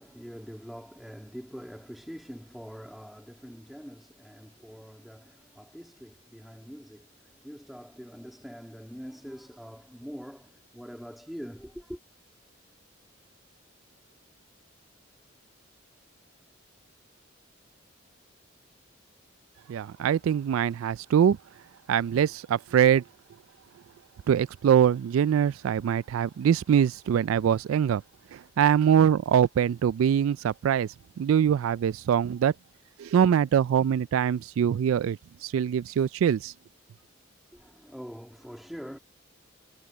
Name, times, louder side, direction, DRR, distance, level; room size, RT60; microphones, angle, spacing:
voice 1, 0.0-12.0 37.5-39.0, equal, ahead, 1.7 m, -44 dB
voice 2, 19.7-21.4 21.9-23.0 24.3-28.0 28.3-32.5 33.0-36.5, right 8 dB, 90° right, 0.3 m, -23 dB
head